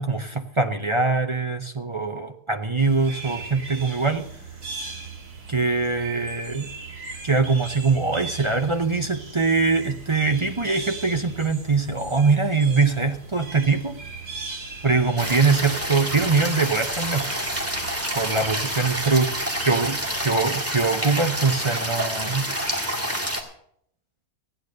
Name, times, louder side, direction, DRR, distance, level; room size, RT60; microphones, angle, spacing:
voice 1, 0.0-4.3 5.5-6.7 7.2-14.0 14.8-17.3 18.1-19.3 19.6-22.5, right 4 dB, 35° right, 6 dB, 0.5 m, -23 dB
sound 1, 2.8-20.3, right 4 dB, 80° right, 2.8 m, -39 dB
sound 2, 15.2-23.4, equal, 10° right, 1.7 m, -28 dB
15.0 x 9.0 x 6.6 m, 0.69 s
omnidirectional pair, 1.6 m